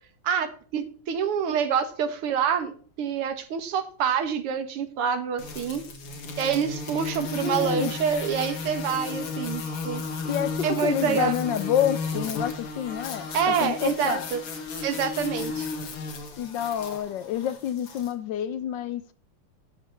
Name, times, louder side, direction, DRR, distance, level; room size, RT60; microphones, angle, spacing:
voice 1, 0.2-5.8 6.4-10.0 10.6-11.3 13.3-14.4 14.8-15.7, right 7 dB, 90° right, 2.2 m, -27 dB
sound 1, 5.4-18.1, left 4 dB, 90° left, 2.7 m, -34 dB
voice 2, 7.4-7.9 10.2-13.3 13.6-14.3 16.4-19.1, left 10 dB, 65° left, 1.2 m, -28 dB
12.5 x 5.0 x 7.1 m
omnidirectional pair, 2.4 m